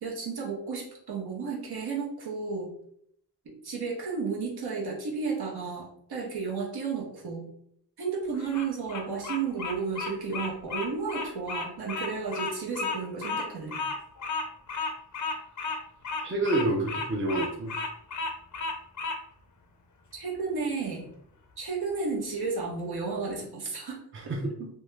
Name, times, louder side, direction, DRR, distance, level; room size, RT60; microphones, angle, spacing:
voice 1, 0.0-2.7 3.4-7.5 8.0-13.8 20.1-21.1 21.6-24.0 24.2-24.3, right 5 dB, 65° right, -2 dB, 0.9 m, -33 dB
Bird vocalization bird call bird song, 8.3-19.2, left 4 dB, 45° left, 0.5 m, -33 dB
voice 2, 16.2-17.7 24.1-24.7, right 2 dB, 30° right, 0 dB, 0.6 m, -28 dB
2.6 x 2.2 x 3.1 m, 0.68 s
wide cardioid pair, 110°, 40 cm